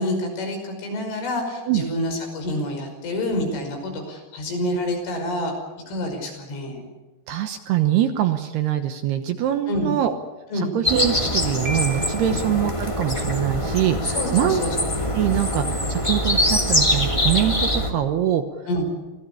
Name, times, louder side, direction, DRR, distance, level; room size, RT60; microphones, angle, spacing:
voice 1, 0.0-5.5 5.9-6.8 9.7-10.0 10.5-10.7 12.3-12.4 14.0-14.8 18.7-18.8, left 1 dB, 75° left, 3 dB, 8.0 m, -27 dB
voice 2, 7.3-10.1 10.5-14.6 15.1-18.4, right 11 dB, 70° right, 7 dB, 2.7 m, -23 dB
sound 1, 10.8-17.9, left 1 dB, 20° left, 0.9 m, -23 dB
Piano, 11.6-12.6, right 1 dB, 30° right, 2.1 m, -35 dB
25.5 x 18.0 x 8.6 m, 1.1 s
omnidirectional pair, 5.6 m